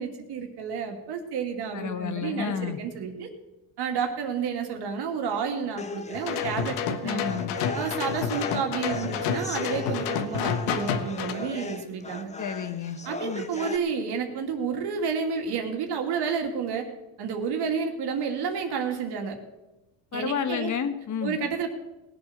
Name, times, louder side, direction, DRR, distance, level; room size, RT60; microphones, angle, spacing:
voice 1, 0.0-3.3 3.8-7.3 7.7-12.3 13.0-16.9 17.2-19.4 20.1-20.7 21.2-21.7, right 6 dB, 60° right, 4 dB, 2.5 m, -30 dB
voice 2, 1.7-2.8 7.0-7.5 12.4-13.5 20.1-21.4, left 7 dB, 40° left, 10 dB, 1.6 m, -31 dB
sound 1, 5.8-13.8, left 4 dB, 15° left, 1.0 m, -38 dB
sound 2, 6.1-11.3, left 7 dB, 90° left, 1.5 m, -29 dB
19.0 x 7.9 x 6.8 m, 1.0 s
supercardioid pair, 100°, 44 cm